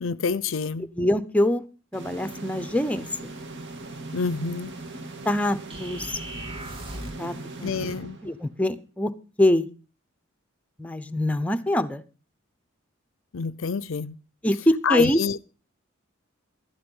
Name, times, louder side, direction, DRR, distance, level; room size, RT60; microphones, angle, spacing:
voice 1, 0.0-0.9 4.1-4.7 7.6-8.2 13.3-14.2 14.8-15.4, left 5 dB, 65° left, 0.6 m, -27 dB
voice 2, 1.0-1.6 1.9-3.3 5.2-6.2 6.9-7.3 7.6-7.9 8.2-9.1 9.4-9.7 10.8-12.0 14.4-15.2, left 1 dB, 5° left, 0.8 m, -24 dB
sound 1, 1.9-8.7, right 2 dB, 60° right, 2.0 m, -39 dB
sound 2, 5.7-7.3, right 1 dB, 25° right, 2.4 m, -38 dB
12.0 x 11.0 x 5.5 m
head